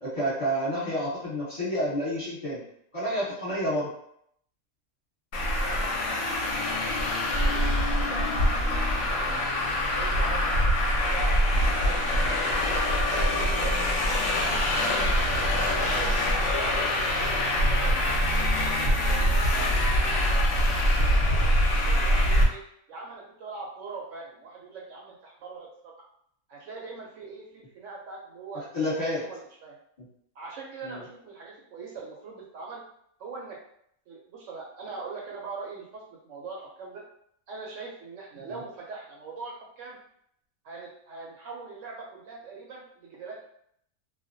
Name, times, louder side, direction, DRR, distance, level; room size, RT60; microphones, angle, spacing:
voice 1, 0.0-2.6 2.9-3.9 28.7-29.2 30.8-31.0 38.5-38.6, equal, 25° left, -9 dB, 0.9 m, -29 dB
Traffic noise roadway noise, 5.3-22.4, left 1 dB, 70° left, 0.8 m, -24 dB
voice 2, 5.3-6.0 6.7-8.7 9.0-9.6 9.9-12.0 12.6-14.1 14.6-15.0 15.6-16.2 16.5-18.2 18.8-19.8 21.0-22.6 22.9-25.9 26.5-28.6 29.2-29.8 30.4-32.8 33.2-33.6 34.1-37.0 37.5-40.0 40.6-43.4, right 4 dB, 70° right, -2 dB, 0.8 m, -41 dB
2.3 x 2.0 x 2.5 m, 0.69 s
omnidirectional pair, 1.5 m